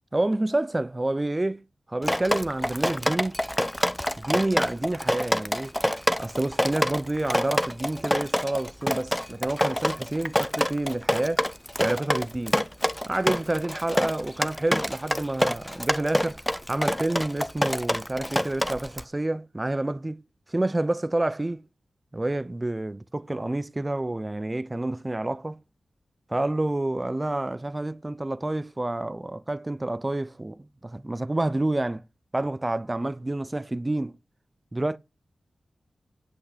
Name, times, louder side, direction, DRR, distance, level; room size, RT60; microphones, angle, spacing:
voice 1, 0.1-3.4 4.2-5.8 6.2-11.5 11.8-12.6 13.1-16.4 16.7-20.2 20.5-21.7 22.1-25.6 26.3-32.0 32.3-34.2 34.7-35.0, right 2 dB, 25° right, 0.6 m, -28 dB
Drip, 2.0-19.0, equal, 5° left, 0.7 m, -26 dB
10.0 x 6.1 x 5.0 m
cardioid pair, 45°, 0 cm